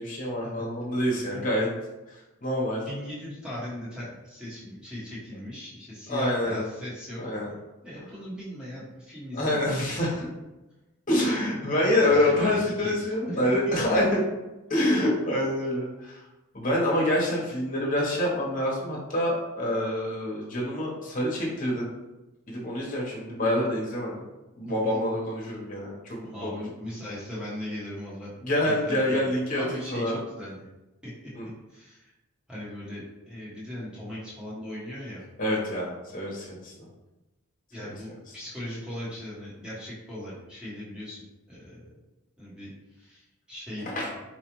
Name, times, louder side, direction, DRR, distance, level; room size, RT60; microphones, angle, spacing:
voice 1, 0.0-1.7 2.4-2.9 6.1-6.6 7.2-7.5 9.3-10.3 11.1-14.2 14.7-16.2 16.5-21.9 22.5-24.2 24.6-26.6 28.4-29.6 29.9-30.2 31.3-31.5 35.4-36.9 43.8-44.1, left 1 dB, 35° left, -4 dB, 0.9 m, -26 dB
voice 2, 2.9-7.2 7.8-9.7 12.0-13.9 26.3-28.3 28.6-30.7 31.0-32.1 32.5-35.2 37.7-41.8 42.4-44.2, left 1 dB, 5° right, -9 dB, 1.1 m, -39 dB
4.3 x 2.4 x 3.0 m, 1.0 s
head